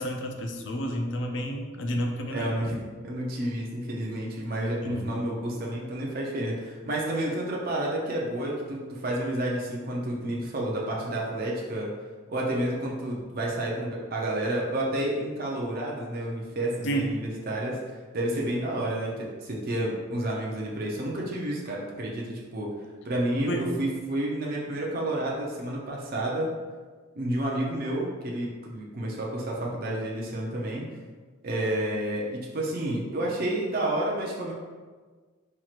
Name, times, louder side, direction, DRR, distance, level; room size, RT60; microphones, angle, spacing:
voice 1, 0.0-2.5 4.8-5.0 16.8-17.1 23.5-23.6, equal, 60° left, 3 dB, 0.4 m, -30 dB
voice 2, 2.3-11.9 12.3-17.8 18.1-22.7 23.0-26.5 27.2-30.9 31.4-34.5, right 1 dB, 45° right, -3 dB, 0.5 m, -30 dB
4.3 x 2.9 x 2.4 m, 1.5 s
head